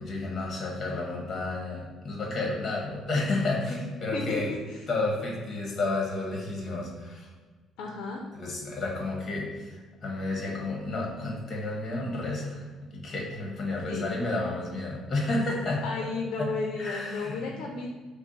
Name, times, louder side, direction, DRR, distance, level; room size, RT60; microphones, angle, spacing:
voice 1, 0.0-4.5 4.9-7.3 8.3-15.8 16.4-16.5 16.8-17.4, left 2 dB, 30° left, -2 dB, 1.1 m, -31 dB
voice 2, 4.1-4.8 7.8-8.2 13.9-14.1 15.8-17.9, left 3 dB, 85° left, 0 dB, 0.6 m, -33 dB
5.8 x 2.2 x 4.1 m, 1.4 s
cardioid pair, 170°, 0 cm